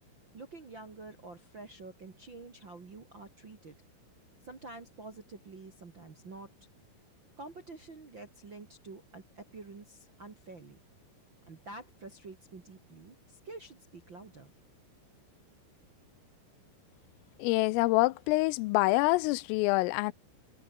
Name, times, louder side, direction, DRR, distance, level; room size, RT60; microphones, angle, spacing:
voice 1, 0.3-3.8 4.4-6.5 7.4-10.8 11.5-14.5, right 3 dB, 40° right, 1.7 m, -48 dB
voice 2, 17.4-20.1, left 22 dB, 85° left, 3.3 m, -26 dB
omnidirectional pair, 5.9 m